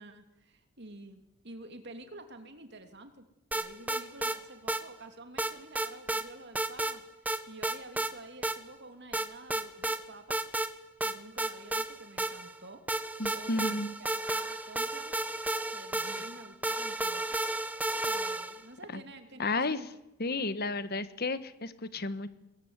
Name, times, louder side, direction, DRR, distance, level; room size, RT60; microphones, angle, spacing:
voice 1, 0.0-3.3 3.5-7.0 7.5-10.5 11.0-12.8 13.3-15.2 15.7-17.4 17.7-19.9, right 2 dB, 50° right, 7 dB, 2.8 m, -49 dB
sound 1, 3.5-4.4 4.7-4.8 5.4-6.2 6.5-7.0 7.3-8.1 8.4-8.6 9.1-10.0 10.3-10.7 11.0-12.6 12.9-18.6, right 2 dB, 5° right, 1.1 m, -32 dB
voice 2, 13.2-13.9 18.9-19.0 19.4-19.8 20.2-22.3, left 3 dB, 45° left, 13 dB, 1.4 m, -32 dB
23.5 x 21.0 x 9.6 m, 0.93 s
head